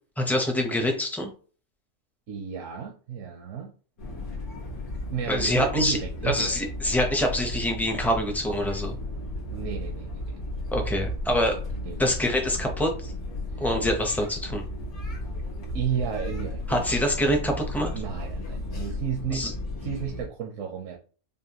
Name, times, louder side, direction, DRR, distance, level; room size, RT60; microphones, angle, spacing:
voice 1, 0.2-1.3 5.3-6.0 6.2-9.0 10.7-11.6 12.0-13.1 13.6-14.6 16.7-17.9 19.3-19.5, left 1 dB, ahead, 3 dB, 0.4 m, -25 dB
voice 2, 2.3-3.7 5.1-6.6 9.5-10.1 11.7-12.0 13.5-13.6 15.7-17.0 17.9-19.5 19.8-21.0, right 7 dB, 70° right, 1 dB, 1.0 m, -32 dB
sound 1, 4.0-20.3, left 1 dB, 85° left, 1.7 m, -34 dB
5.4 x 2.2 x 2.9 m, 0.39 s
omnidirectional pair, 1.5 m